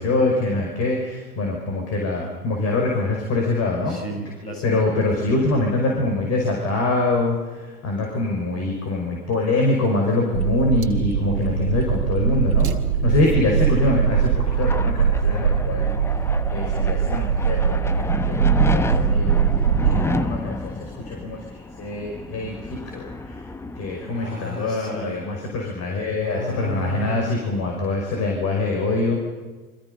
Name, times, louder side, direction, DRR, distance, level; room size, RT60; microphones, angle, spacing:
voice 1, 0.0-4.0 4.6-12.7 13.0-16.0 16.5-19.3 19.9-23.5 23.8-29.2, left 2 dB, 35° left, 1 dB, 5.8 m, -24 dB
voice 2, 3.9-5.1 11.2-11.7 19.7-20.1 24.1-25.2 26.2-27.4, right 1 dB, 90° left, 1 dB, 7.6 m, -34 dB
sound 1, 10.3-20.0, right 7 dB, 70° right, 2.4 m, -21 dB
sound 2, 13.5-24.8, left 2 dB, 5° left, 0.8 m, -30 dB
30.0 x 24.5 x 5.5 m, 1.3 s
figure-of-eight pair, 90°, 45 cm